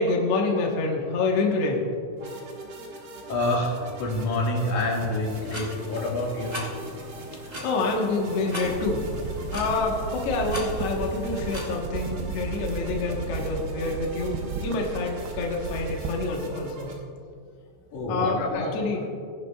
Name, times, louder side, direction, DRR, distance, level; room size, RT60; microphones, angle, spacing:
voice 1, 0.0-1.8 7.5-14.4 14.6-16.9 18.1-19.0, left 3 dB, 80° left, 0 dB, 1.4 m, -27 dB
sound 1, 2.2-16.9, right 1 dB, 65° right, 1.3 m, -42 dB
voice 2, 3.3-6.7 17.9-18.8, left 1 dB, 55° left, -3 dB, 2.8 m, -27 dB
sound 2, 5.2-11.8, equal, 30° right, 0.5 m, -40 dB
sound 3, 8.6-16.4, right 5 dB, 85° right, 2.7 m, -34 dB
18.5 x 10.5 x 2.3 m, 2.4 s
omnidirectional pair, 4.7 m